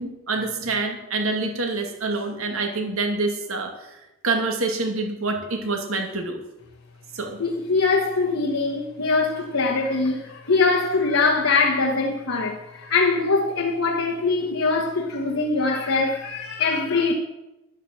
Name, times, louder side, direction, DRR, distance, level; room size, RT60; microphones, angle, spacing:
voice 1, 0.0-4.0 4.2-6.4 7.1-7.4, right 3 dB, 80° right, 2.4 m, -26 dB
voice 2, 7.4-17.1, left 3 dB, 75° left, 1.4 m, -22 dB
11.5 x 8.9 x 7.6 m
head